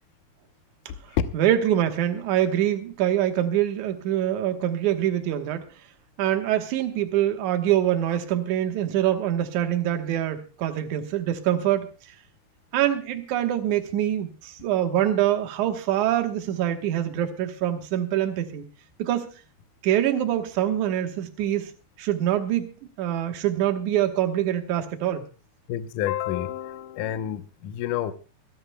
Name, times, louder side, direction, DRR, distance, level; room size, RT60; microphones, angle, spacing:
voice 1, 1.3-5.7 6.2-11.9 12.7-18.6 19.0-19.3 19.8-25.3, right 11 dB, 65° right, 6 dB, 2.1 m, -24 dB
voice 2, 25.7-28.1, left 11 dB, 85° left, 10 dB, 1.8 m, -28 dB
25.5 x 13.5 x 2.3 m, 0.32 s
omnidirectional pair, 5.0 m